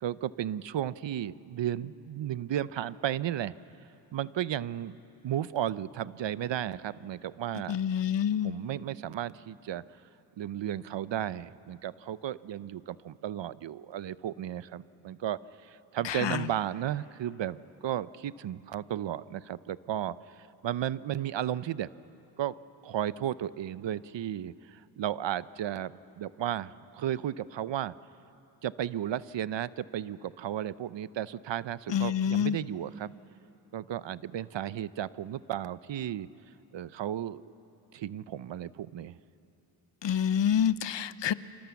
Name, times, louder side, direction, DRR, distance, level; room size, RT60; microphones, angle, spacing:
voice 1, 0.0-3.5 4.1-5.0 5.2-7.8 8.4-9.8 10.4-17.6 17.8-20.1 20.6-21.9 22.4-22.5 22.8-27.9 28.6-33.1 33.7-36.3 36.7-37.4 37.9-39.2, right 11 dB, 70° right, 17 dB, 0.7 m, -34 dB
voice 2, 7.7-8.5 16.0-16.5 31.9-32.6 40.0-41.3, left 9 dB, 70° left, 15 dB, 0.8 m, -27 dB
28.0 x 26.5 x 7.1 m, 2.9 s
cardioid pair, 65°, 46 cm